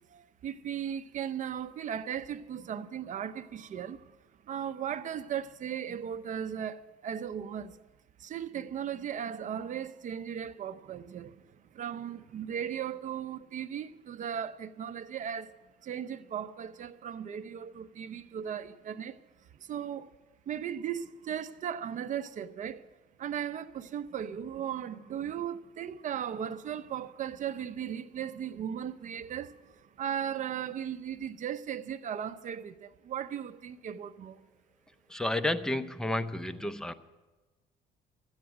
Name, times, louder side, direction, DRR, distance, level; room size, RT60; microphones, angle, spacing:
voice 1, 0.1-4.1 4.5-7.8 8.2-11.4 11.7-15.5 15.8-19.2 19.6-20.1 20.5-22.8 23.2-29.5 30.0-34.4, right 9 dB, 50° right, 0.7 m, -37 dB
voice 2, 35.1-36.9, left 1 dB, 5° left, 0.6 m, -31 dB
13.0 x 8.8 x 9.2 m
cardioid pair, 110°, 17 cm